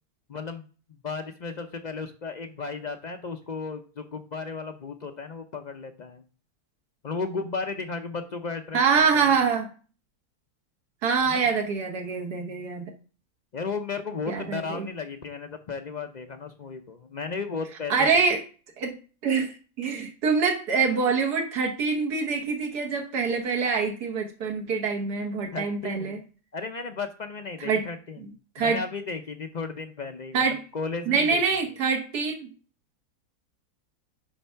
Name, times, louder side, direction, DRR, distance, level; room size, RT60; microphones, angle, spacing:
voice 1, 0.3-6.2 7.0-9.4 11.3-11.5 13.5-18.2 25.5-26.2 26.5-28.2 28.6-30.4 30.7-31.4, left 4 dB, 60° left, 0.4 m, -34 dB
voice 2, 8.7-9.7 11.0-12.9 14.3-14.9 17.9-18.4 18.8-19.0 19.2-26.2 27.6-27.9 28.5-28.8 30.3-30.6 31.1-32.5, right 5 dB, 85° right, 1.7 m, -25 dB
9.9 x 3.4 x 5.6 m
omnidirectional pair, 1.6 m